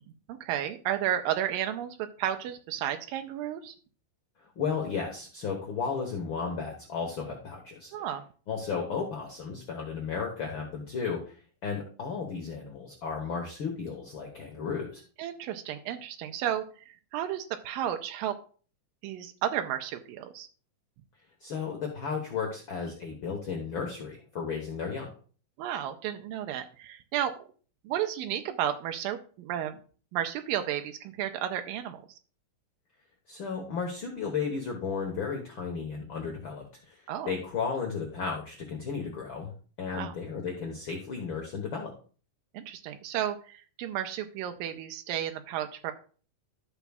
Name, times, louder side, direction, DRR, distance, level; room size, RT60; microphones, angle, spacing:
voice 1, 0.3-3.7 7.9-8.2 15.2-18.4 19.0-20.5 25.6-27.3 27.8-29.8 30.1-32.0 37.1-37.3 39.9-40.1 42.5-45.9, right 11 dB, 90° right, 6 dB, 2.4 m, -32 dB
voice 2, 4.5-7.9 8.5-11.3 11.6-15.0 21.4-25.1 33.3-39.5 39.8-41.9, left 5 dB, 70° left, 0 dB, 1.2 m, -34 dB
12.5 x 7.0 x 2.3 m, 0.40 s
omnidirectional pair, 4.0 m